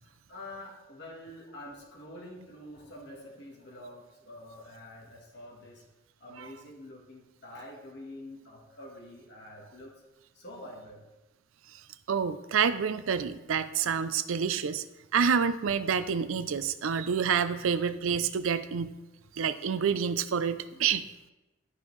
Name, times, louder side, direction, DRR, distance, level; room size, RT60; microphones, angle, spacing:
voice 1, 0.0-5.8 6.2-9.9 10.3-11.0 20.7-20.9, left 1 dB, 55° left, -2 dB, 1.5 m, -47 dB
voice 2, 12.1-14.8 15.1-18.9 19.4-21.0, right 7 dB, 80° right, 13 dB, 0.4 m, -28 dB
11.5 x 5.3 x 3.2 m, 1.0 s
head